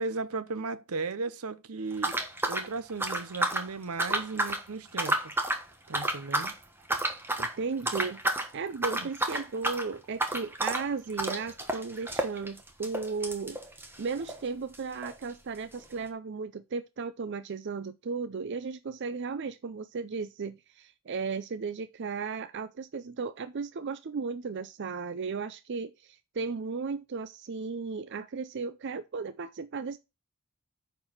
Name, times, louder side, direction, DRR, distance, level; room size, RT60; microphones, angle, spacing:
voice 1, 0.0-2.2 2.5-5.2 5.9-6.6 9.0-9.1, right 4 dB, 80° right, 0.8 m, -36 dB
sound 1, 2.0-3.7 4.0-4.6 4.9-5.6 5.9-6.6 6.9-7.6 7.9-8.5 8.8-14.4 14.7-14.8 15.0-15.1 15.8-15.9, right 1 dB, 10° right, 1.2 m, -30 dB
voice 2, 7.4-13.6 14.0-30.0, right 4 dB, 50° right, 0.5 m, -35 dB
9.6 x 4.6 x 5.7 m
head